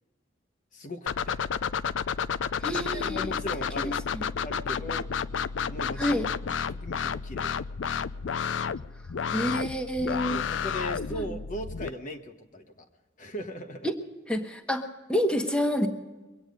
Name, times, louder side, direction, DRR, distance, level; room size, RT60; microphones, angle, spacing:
voice 1, 0.7-1.4 2.7-4.0 4.4-5.1 5.7-6.2 6.7-7.6 9.4-9.6 10.1-12.9 13.2-13.9, equal, 45° left, 4 dB, 1.1 m, -38 dB
sound 1, 1.1-11.9, left 6 dB, 80° left, 0.4 m, -31 dB
voice 2, 2.6-3.3 3.8-4.2 6.0-6.3 9.3-10.4 11.1-11.3 13.8-14.0 14.3-15.9, equal, 5° left, 3 dB, 1.1 m, -28 dB
23.5 x 8.9 x 5.2 m, 1.2 s
head